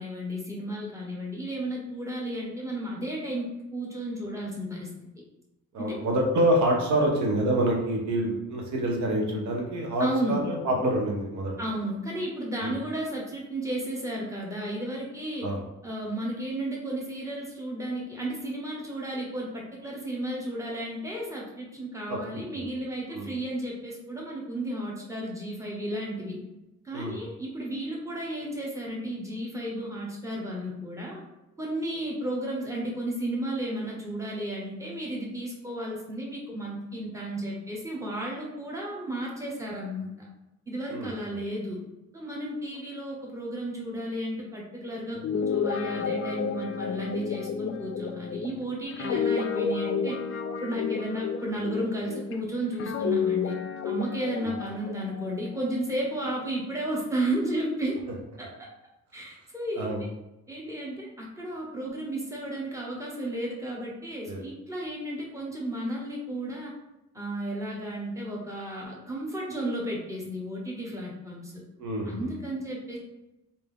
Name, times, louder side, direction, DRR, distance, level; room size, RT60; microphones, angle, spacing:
voice 1, 0.0-4.9 5.8-6.0 10.0-10.4 11.6-15.5 15.8-26.4 26.8-31.2 31.6-40.3 40.7-41.8 42.1-50.1 50.6-53.6 53.8-58.0 58.4-58.5 59.1-59.9 60.5-66.7 67.1-71.6 72.0-73.0, right 1 dB, 10° right, -3 dB, 1.1 m, -33 dB
voice 2, 5.7-11.5 12.6-12.7 15.4-15.6 22.1-22.2 22.5-22.7 23.1-23.3 26.9-27.2 40.9-41.1 54.4-54.5 59.8-60.0 64.2-64.4 71.8-72.3, right 1 dB, 70° right, 0 dB, 0.9 m, -27 dB
Guitar, 45.1-52.3 52.8-56.5, left 6 dB, 45° left, 0.4 m, -31 dB
3.3 x 2.7 x 3.5 m, 0.94 s
cardioid pair, 90°, 30 cm